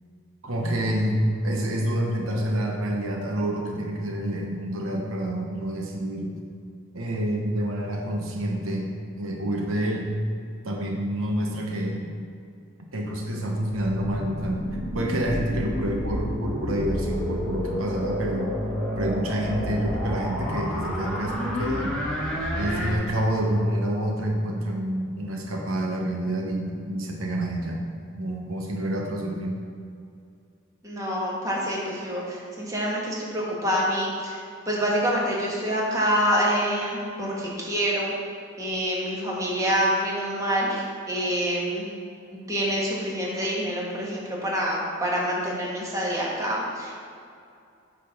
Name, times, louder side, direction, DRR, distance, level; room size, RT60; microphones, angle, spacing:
voice 1, 0.4-6.3 6.9-8.9 9.2-10.1 10.6-12.1 12.9-18.5 19.0-21.9 22.6-27.8 28.2-29.6, right 1 dB, 85° right, 0 dB, 1.0 m, -28 dB
sound 1, 13.7-22.9, equal, 5° left, 1.4 m, -30 dB
voice 2, 30.8-34.4 34.6-38.1 38.6-41.9 42.3-46.9, equal, 15° right, -5 dB, 1.5 m, -26 dB
8.6 x 3.7 x 5.9 m, 2.5 s
head